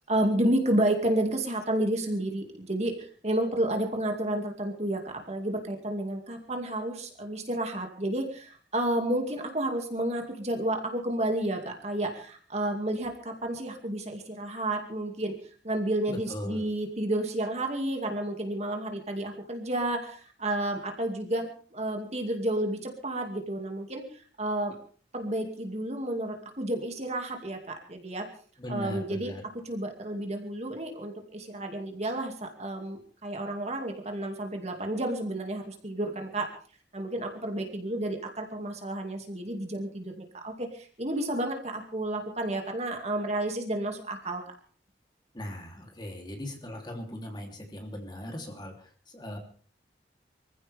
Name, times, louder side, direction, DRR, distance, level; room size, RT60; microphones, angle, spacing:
voice 1, 0.1-15.3 15.6-24.8 25.1-28.3 28.7-29.3 29.6-36.5 36.9-44.4, right 1 dB, 40° right, 3 dB, 2.4 m, -31 dB
voice 2, 16.1-16.6 28.6-29.4 45.3-49.4, left 1 dB, 25° left, 2 dB, 3.3 m, -39 dB
25.0 x 15.5 x 3.6 m, 0.43 s
head